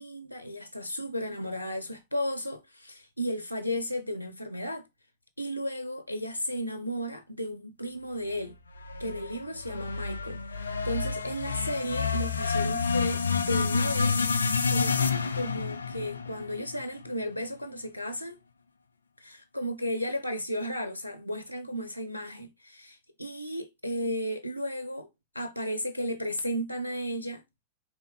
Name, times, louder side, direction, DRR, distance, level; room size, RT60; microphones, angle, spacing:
voice 1, 0.0-4.9 5.4-8.5 9.0-15.0 15.3-18.4 19.2-25.1 25.3-27.4, equal, 90° right, 0.4 m, -34 dB
sound 1, 8.8-17.1, left 5 dB, 75° left, 0.5 m, -29 dB
5.0 x 3.1 x 3.5 m
figure-of-eight pair, 90°, 0 cm